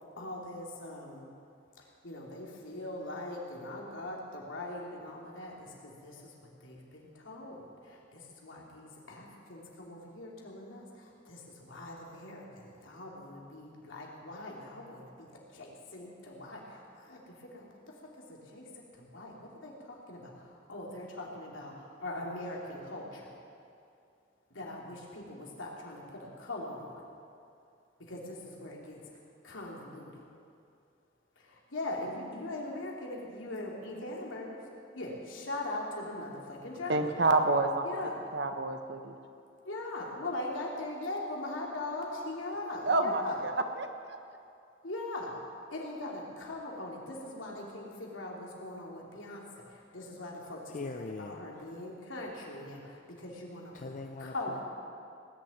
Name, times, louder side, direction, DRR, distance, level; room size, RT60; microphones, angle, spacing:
voice 1, 0.2-1.3 1.8-6.3 6.6-23.3 24.5-27.0 28.0-30.2 31.4-34.6 34.9-37.0 37.8-38.2 39.6-43.4 44.8-45.4 45.7-53.7 54.2-54.6, left 2 dB, 80° left, -2 dB, 3.0 m, -41 dB
voice 2, 36.9-37.8 38.3-39.1 42.9-44.2, right 2 dB, 60° right, 6 dB, 1.1 m, -28 dB
voice 3, 50.7-51.4 53.7-54.6, left 3 dB, 40° left, 5 dB, 0.5 m, -41 dB
19.0 x 7.4 x 9.4 m, 2.5 s
head